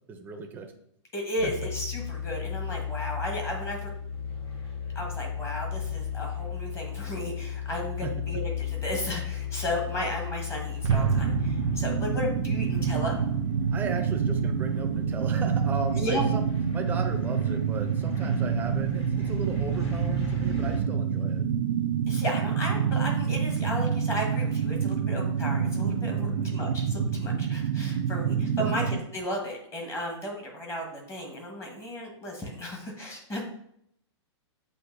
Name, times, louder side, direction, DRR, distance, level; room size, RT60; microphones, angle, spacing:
voice 1, 0.1-0.7 1.4-1.5 8.0-8.1 13.7-16.4 16.7-21.4 26.1-26.5 28.6-28.9, right 4 dB, 10° right, 4 dB, 0.5 m, -36 dB
voice 2, 1.1-3.9 4.9-13.2 15.9-16.3 22.1-33.4, equal, 15° left, 0 dB, 1.1 m, -34 dB
sound 1, 1.4-20.8, left 8 dB, 70° left, 1.4 m, -36 dB
sound 2, 10.8-29.0, right 7 dB, 90° right, 0.4 m, -27 dB
7.7 x 2.6 x 2.5 m, 0.71 s
hypercardioid pair, 140°, 15 cm